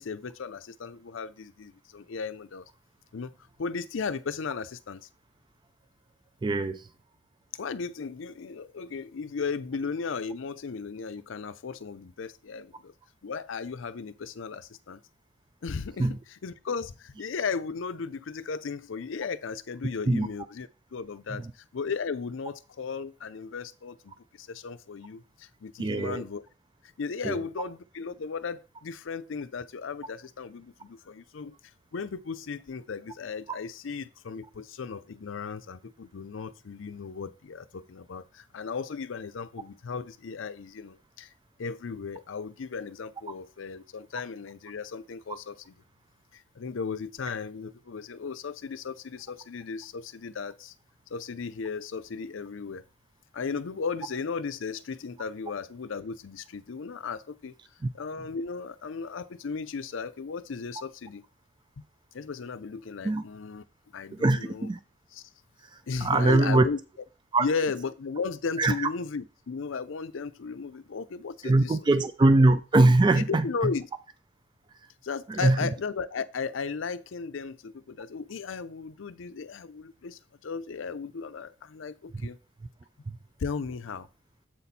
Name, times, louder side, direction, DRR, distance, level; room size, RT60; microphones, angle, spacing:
voice 1, 0.0-2.7 3.1-5.1 7.5-12.9 13.2-15.0 15.6-26.4 27.0-31.6 31.9-41.3 41.6-45.7 46.3-50.7 51.1-52.8 53.3-57.5 57.9-61.2 61.8-61.9 62.1-63.6 63.9-64.7 65.1-65.2 65.9-66.8 67.4-71.8 73.2-73.9 75.0-82.4 83.4-84.1, left 5 dB, 70° left, 0.5 m, -36 dB
voice 2, 6.4-6.9 16.0-16.2 20.1-20.3 21.4-21.5 25.8-26.2 27.2-27.4 63.0-63.2 64.2-64.8 66.0-66.7 67.3-67.5 68.6-68.9 71.4-73.4 75.3-75.7, right 2 dB, 25° right, 0.3 m, -22 dB
7.7 x 4.2 x 4.0 m
head